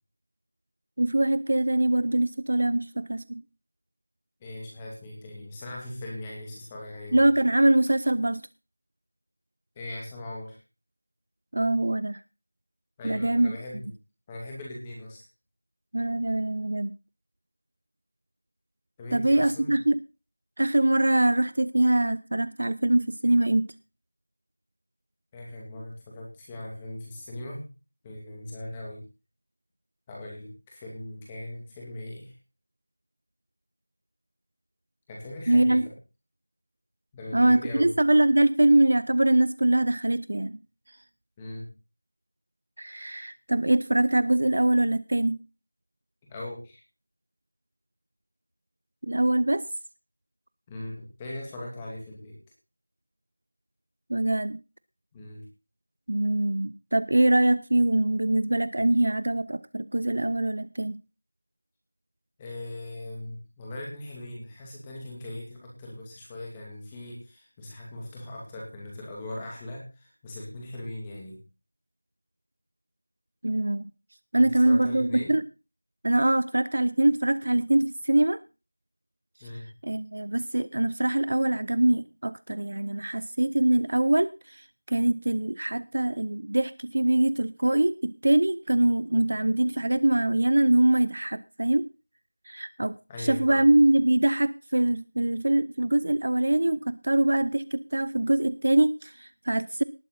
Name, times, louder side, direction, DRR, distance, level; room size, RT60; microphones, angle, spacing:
voice 1, 1.0-3.4 7.1-8.4 11.5-12.2 13.0-13.6 15.9-16.9 19.1-20.0 20.6-23.7 35.5-35.8 37.3-40.5 42.8-45.4 49.1-49.6 54.1-54.6 56.1-61.0 73.4-73.9 74.3-75.4 76.0-78.4 79.8-91.9 92.5-99.8, right 1 dB, 45° right, 17 dB, 0.6 m, -23 dB
voice 2, 4.4-7.3 9.7-10.6 13.0-13.9 14.3-15.2 19.0-19.8 25.3-27.6 28.0-29.0 30.1-32.3 35.1-35.9 37.1-37.9 41.4-41.7 46.3-46.8 50.7-52.4 55.1-55.4 62.4-71.4 74.4-75.3 79.4-79.7 93.1-93.8, left 1 dB, 5° left, -2 dB, 2.6 m, -39 dB
19.0 x 8.3 x 4.1 m, 0.30 s
figure-of-eight pair, 180°, 0 cm